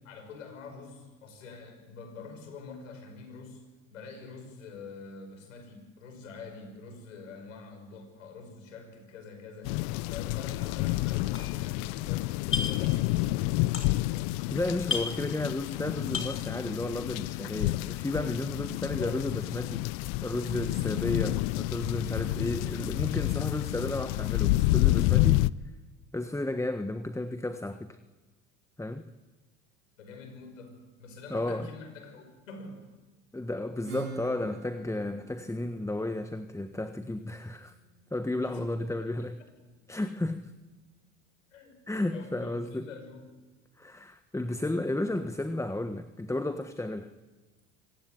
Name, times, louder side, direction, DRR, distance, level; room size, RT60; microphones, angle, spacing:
voice 1, 0.0-3.6 3.9-9.8 10.1-13.7 18.9-19.2 30.0-32.9 38.4-39.1 39.6-39.7 41.5-41.8 42.1-43.3, left 4 dB, 85° left, 7 dB, 6.0 m, -46 dB
sound 1, 9.6-25.5, left 20 dB, 65° left, 0.7 m, -29 dB
sound 2, 11.3-12.0 12.3-12.9 13.2-14.2 14.5-14.6 14.8-15.8 16.0-16.5, left 6 dB, 35° left, 6.1 m, -34 dB
voice 2, 14.5-19.9 20.2-25.4 26.1-28.0 28.8-29.0 31.3-31.7 33.3-37.7 38.1-39.4 39.9-40.5 41.9-42.9 43.8-47.1, left 2 dB, 10° left, 10 dB, 1.3 m, -33 dB
Acoustic guitar / Strum, 33.8-39.2, right 5 dB, 80° right, 6.8 m, -47 dB
25.5 x 18.0 x 9.3 m, 1.2 s
hypercardioid pair, 70°, 38 cm